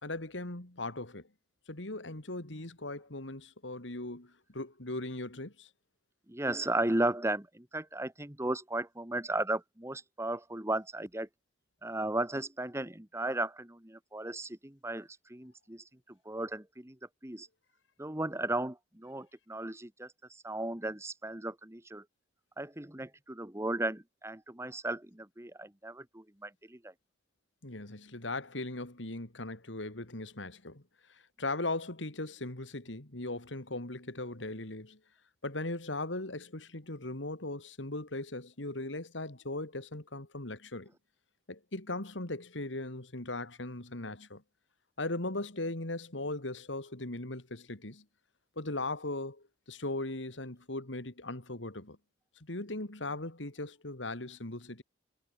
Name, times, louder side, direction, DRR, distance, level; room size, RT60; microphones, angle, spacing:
voice 1, 0.0-1.3 1.7-5.7 27.6-30.8 31.1-35.0 35.4-40.9 41.5-44.4 45.0-48.0 48.6-52.0 52.4-54.8, left 2 dB, 90° left, 3.1 m, -38 dB
voice 2, 6.3-11.3 11.8-15.8 16.2-17.0 17.2-17.5 18.0-20.1 20.4-22.0 22.6-26.9, right 2 dB, 15° right, 1.5 m, -35 dB
head